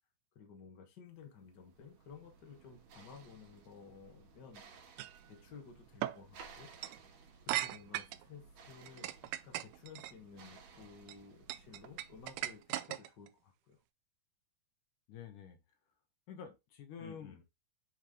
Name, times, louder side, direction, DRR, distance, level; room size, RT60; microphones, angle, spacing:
voice 1, 0.3-4.6 5.3-6.7 7.4-13.8 17.0-17.4, left 6 dB, 50° left, 1.3 m, -54 dB
sound 1, 1.2-12.7, right 5 dB, 65° right, 2.5 m, -59 dB
sound 2, 5.0-5.2 6.0-6.2 6.7-7.0 7.5-8.2 8.8-10.1 10.8-11.1 11.5-13.3, right 14 dB, 85° right, 2.0 m, -38 dB
voice 2, 15.1-15.6 16.3-17.4, left 7 dB, 80° left, 2.7 m, -49 dB
8.1 x 3.2 x 3.6 m
omnidirectional pair, 3.6 m